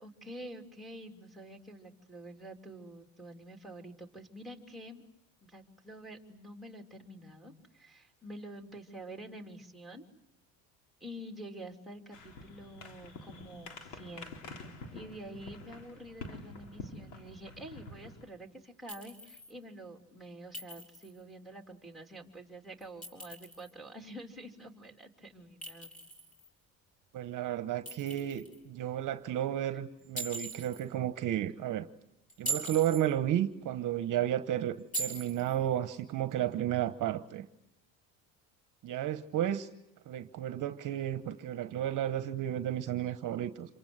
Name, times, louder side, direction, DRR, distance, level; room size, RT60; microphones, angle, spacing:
voice 1, 0.0-5.0 5.4-10.0 11.0-14.4 14.9-25.9, right 1 dB, ahead, 2 dB, 3.3 m, -48 dB
sound 1, 12.1-18.3, left 3 dB, 85° left, 3.8 m, -47 dB
Chink clink, 18.9-19.5 20.5-21.2 22.8-23.7 25.6-26.5 27.9-28.6 30.2-30.8 32.3-33.1 34.9-35.6, right 3 dB, 20° left, 4.6 m, -40 dB
voice 2, 27.1-31.9 32.4-37.4 38.8-39.7 40.1-43.8, right 11 dB, 50° right, 10 dB, 1.2 m, -32 dB
27.5 x 24.0 x 8.0 m, 0.84 s
cardioid pair, 110°, 39 cm